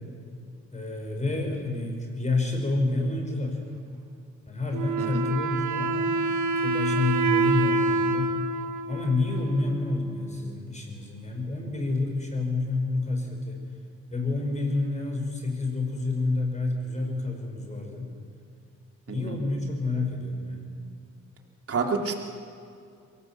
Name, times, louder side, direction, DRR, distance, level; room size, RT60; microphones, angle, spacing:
voice 1, 0.7-3.6 4.5-6.2 6.6-8.3 8.9-13.7 14.1-18.1 19.1-20.7, left 2 dB, 25° left, 2 dB, 5.6 m, -29 dB
Wind instrument woodwind instrument, 4.7-10.2, right 3 dB, 70° right, 1.8 m, -27 dB
voice 2, 21.7-22.1, right 4 dB, 50° right, 2 dB, 3.1 m, -28 dB
23.0 x 18.0 x 7.7 m, 2.5 s
cardioid pair, 90°, 30 cm